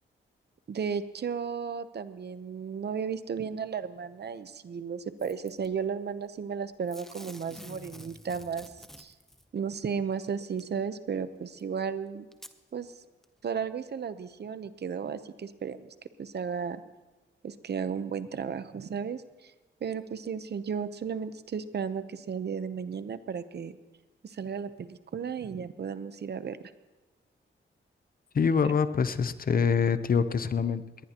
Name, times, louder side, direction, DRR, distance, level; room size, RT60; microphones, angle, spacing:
voice 1, 0.7-8.7 9.0-9.1 9.5-12.3 12.7-12.9 13.4-15.9 16.2-16.8 17.4-19.5 19.8-23.8 24.2-26.6, right 6 dB, 55° right, 12 dB, 0.8 m, -34 dB
Packing tape duct tape / Tearing, 5.2-5.7 6.9-9.4 10.6-10.7 11.6-11.7 12.3-12.6 13.2-13.3, equal, ahead, 0.7 m, -48 dB
voice 2, 28.3-31.0, left 6 dB, 45° left, 12 dB, 0.7 m, -25 dB
22.0 x 18.5 x 3.0 m, 1.2 s
wide cardioid pair, 140°, 20 cm